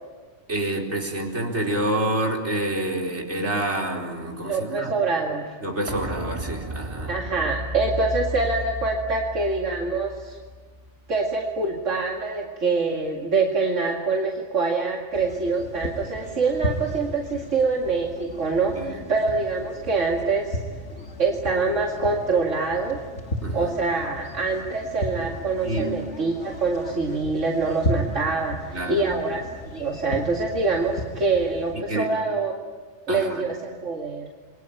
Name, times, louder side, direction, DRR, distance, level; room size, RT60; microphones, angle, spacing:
voice 1, 0.5-4.9 5.6-7.1 18.7-19.0 23.4-23.7 25.6-25.9 28.7-29.0 31.9-32.1 33.1-33.4, right 1 dB, 65° right, 0 dB, 4.6 m, -27 dB
voice 2, 4.4-5.6 7.1-10.4 11.1-20.6 21.2-23.0 23.5-29.5 29.7-32.6 33.1-33.6 33.8-34.3, right 3 dB, 85° right, 0 dB, 2.6 m, -25 dB
sound 1, 5.9-11.5 11.8-11.9, equal, 25° right, 1.5 m, -34 dB
sound 2, 15.1-31.8, equal, 70° left, 2.5 m, -35 dB
29.0 x 23.0 x 9.1 m, 1.4 s
omnidirectional pair, 1.3 m